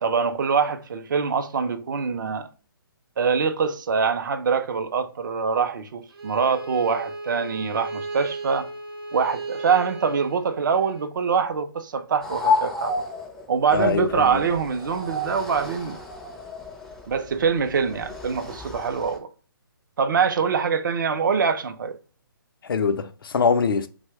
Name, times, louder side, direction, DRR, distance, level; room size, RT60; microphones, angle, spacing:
voice 1, 0.0-2.5 3.2-8.7 9.1-12.9 13.5-16.0 17.1-19.3 20.0-22.0, right 6 dB, 60° right, 0.4 m, -24 dB
Bowed string instrument, 6.1-11.1, right 2 dB, 85° right, 0.8 m, -35 dB
sound 1, 12.2-19.2, left 3 dB, 5° left, 0.4 m, -31 dB
voice 2, 13.7-14.4 22.6-23.9, left 5 dB, 70° left, 0.4 m, -23 dB
2.8 x 2.1 x 3.3 m
figure-of-eight pair, 140°, 12 cm